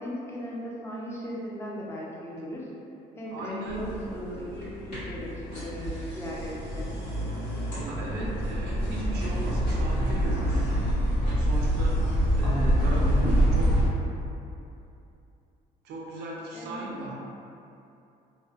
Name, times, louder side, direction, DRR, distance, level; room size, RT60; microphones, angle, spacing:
voice 1, 0.0-2.7 3.2-6.9 12.4-13.4 16.5-16.8, equal, 15° left, -4 dB, 0.4 m, -37 dB
voice 2, 3.3-3.8 7.7-10.7 11.4-12.1 12.4-13.7 15.8-17.1, right 1 dB, 75° right, -3 dB, 0.5 m, -36 dB
sound 1, 3.7-13.9, equal, 80° left, 1.4 m, -26 dB
2.5 x 2.0 x 2.4 m, 2.7 s
cardioid pair, 110°, 17 cm